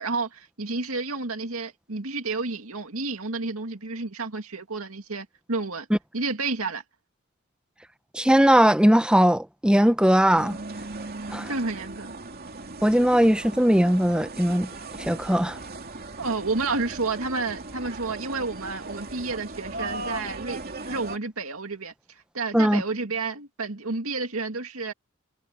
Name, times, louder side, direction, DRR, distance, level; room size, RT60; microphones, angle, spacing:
voice 1, 0.0-5.9 6.1-6.8 11.5-12.1 16.2-21.9 22.3-24.9, right 3 dB, 75° right, 2.2 m, -30 dB
voice 2, 8.1-10.6 11.3-11.5 12.8-14.7 15.0-15.6 22.5-22.8, equal, 5° right, 0.8 m, -19 dB
sound 1, 10.4-21.2, right 2 dB, 45° right, 2.8 m, -38 dB
head